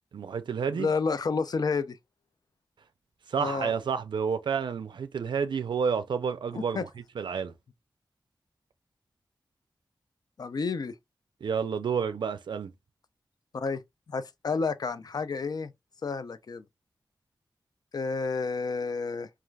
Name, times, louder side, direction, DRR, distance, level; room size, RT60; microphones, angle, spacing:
voice 1, 0.1-0.9 3.3-6.9 7.2-7.5 11.4-12.7, right 6 dB, 80° right, 0.3 m, -30 dB
voice 2, 0.7-2.0 3.4-3.7 6.5-6.9 10.4-11.0 13.5-13.8 14.1-15.7 16.0-16.6 17.9-19.3, left 4 dB, 55° left, 0.4 m, -30 dB
3.2 x 2.3 x 2.3 m
wide cardioid pair, 70°, 8 cm